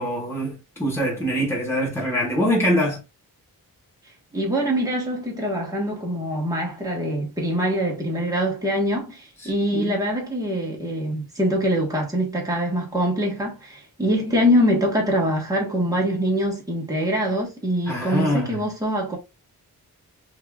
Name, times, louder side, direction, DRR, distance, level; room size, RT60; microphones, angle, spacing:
voice 1, 0.0-3.0 9.4-10.0 17.9-18.6, equal, 5° left, 1.2 m, -24 dB
voice 2, 4.3-19.2, equal, 10° right, 1.3 m, -24 dB
5.4 x 2.7 x 2.3 m
wide cardioid pair, 180°, 38 cm